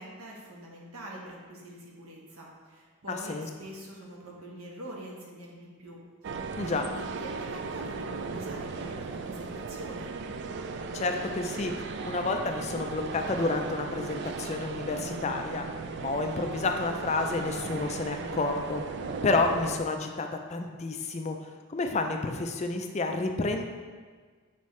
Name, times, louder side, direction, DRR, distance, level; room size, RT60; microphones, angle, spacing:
voice 1, 0.0-10.1, right 1 dB, 80° right, -2 dB, 1.3 m, -45 dB
voice 2, 3.1-3.5 6.6-6.8 10.9-11.7 12.1-15.7 16.0-18.8 19.2-23.6, left 3 dB, 30° left, 4 dB, 0.4 m, -30 dB
sound 1, 6.2-19.8, right 4 dB, 50° right, 0.3 m, -37 dB
7.2 x 4.1 x 3.1 m, 1.5 s
head